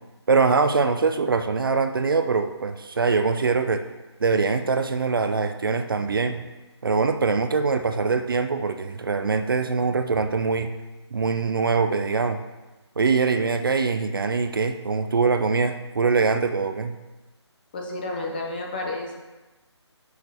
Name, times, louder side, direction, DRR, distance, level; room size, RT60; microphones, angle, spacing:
voice 1, 0.3-3.8 4.2-6.4 6.8-10.7 11.1-12.4 13.0-17.0, right 4 dB, 50° right, 8 dB, 0.4 m, -23 dB
voice 2, 17.7-19.1, left 2 dB, 20° left, 0 dB, 0.7 m, -31 dB
6.3 x 6.2 x 3.4 m, 1.1 s
figure-of-eight pair, 165°, 15 cm